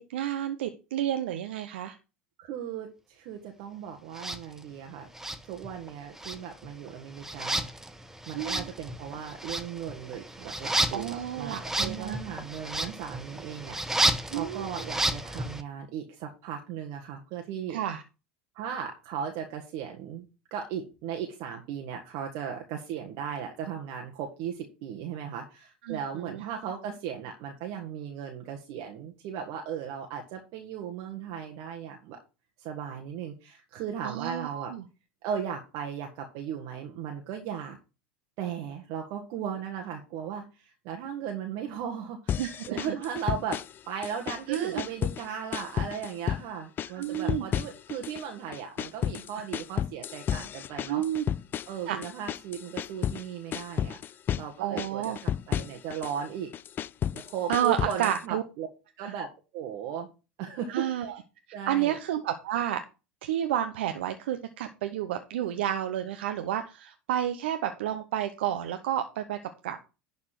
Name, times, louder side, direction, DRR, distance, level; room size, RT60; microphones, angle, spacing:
voice 1, 0.0-2.0 8.4-8.7 10.9-12.2 14.3-14.8 17.7-18.0 25.9-26.4 34.0-34.8 42.4-42.8 44.5-44.8 46.9-47.4 50.9-51.2 51.9-52.0 54.6-55.2 57.5-58.4 59.0-59.1 60.7-61.2 61.7-62.8 63.2-69.8, right 11 dB, 75° right, 7 dB, 0.9 m, -30 dB
voice 2, 2.4-5.1 5.5-7.7 8.3-17.8 18.5-32.2 32.6-34.7 35.2-37.8 38.4-51.0 51.7-54.0 54.3-56.5 57.1-58.7 59.0-59.3 59.5-60.1 60.4-60.9 61.5-62.0, right 8 dB, 60° right, 2 dB, 1.6 m, -37 dB
sound 1, 4.1-4.4 5.1-5.9 6.2-15.6, right 1 dB, 5° right, 1.0 m, -32 dB
sound 2, 42.3-43.8 44.0-45.3 45.5-46.5 46.8-48.2 48.5-53.2 53.5-54.5 54.8-56.1 56.5-58.2, left 10 dB, 35° left, 0.4 m, -32 dB
11.0 x 4.3 x 5.9 m, 0.31 s
hypercardioid pair, 85°, 6 cm